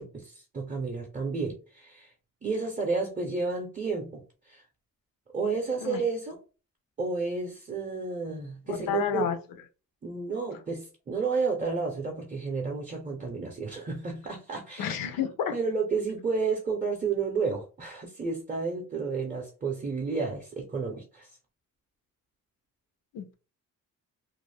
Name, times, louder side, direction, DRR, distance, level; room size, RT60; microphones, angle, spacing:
voice 1, 0.0-2.1 2.4-4.6 5.3-6.4 7.0-9.3 10.0-15.1 15.5-21.3, right 4 dB, 25° right, 1 dB, 0.5 m, -31 dB
voice 2, 8.7-9.4 14.8-15.5 23.1-23.3, left 9 dB, 85° left, 9 dB, 0.6 m, -30 dB
2.4 x 2.1 x 3.2 m, 0.35 s
cardioid pair, 115°, 33 cm